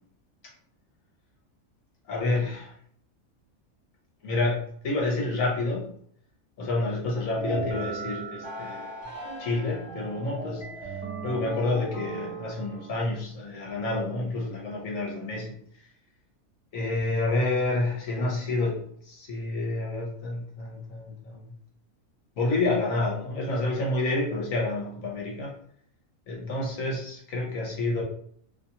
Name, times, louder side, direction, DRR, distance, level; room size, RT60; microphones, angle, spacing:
voice 1, 2.1-2.7 4.2-5.9 6.6-8.9 9.4-10.6 11.2-15.5 16.7-21.5 22.4-25.5 26.3-28.0, left 2 dB, 70° left, -2 dB, 1.2 m, -29 dB
sound 1, 7.3-13.0, right 2 dB, 10° right, 1.1 m, -37 dB
3.4 x 2.8 x 2.8 m, 0.63 s
omnidirectional pair, 1.5 m